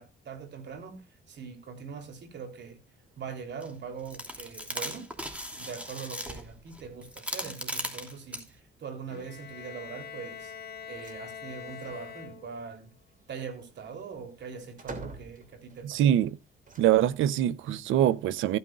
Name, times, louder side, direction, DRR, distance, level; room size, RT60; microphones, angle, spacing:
voice 1, 0.0-2.8 3.2-5.1 5.5-10.5 10.9-12.9 13.3-16.2, right 6 dB, 60° right, 3.2 m, -42 dB
sound 1, 3.6-3.7 4.1-8.5, equal, 5° right, 2.8 m, -37 dB
Bowed string instrument, 9.1-12.8, left 7 dB, 50° left, 2.0 m, -44 dB
sound 2, 11.0-11.2 11.6-12.1 13.5-15.9 16.6-17.4, right 3 dB, 40° right, 2.7 m, -46 dB
voice 2, 15.8-16.4 16.8-18.6, right 11 dB, 85° right, 0.7 m, -24 dB
15.0 x 9.5 x 2.4 m
cardioid pair, 90°, 20 cm